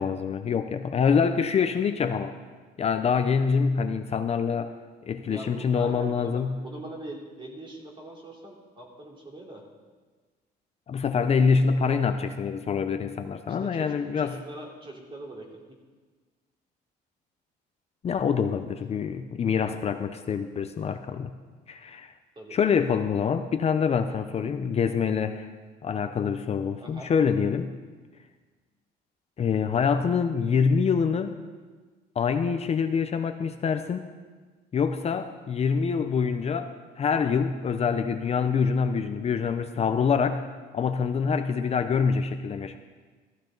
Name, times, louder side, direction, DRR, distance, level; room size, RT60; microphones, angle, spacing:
voice 1, 0.0-2.3 2.8-4.7 5.1-6.6 10.9-14.3 18.0-21.3 21.7-22.1 22.5-25.5 25.8-27.7 29.4-31.4 32.2-34.0 34.7-40.4 40.7-42.8, left 6 dB, 40° left, 8 dB, 0.7 m, -25 dB
voice 2, 5.3-9.6 13.5-15.5 22.3-22.6 26.8-27.1, right 1 dB, 30° right, -1 dB, 3.2 m, -42 dB
14.5 x 14.5 x 4.0 m, 1.4 s
cardioid pair, 110°, 17 cm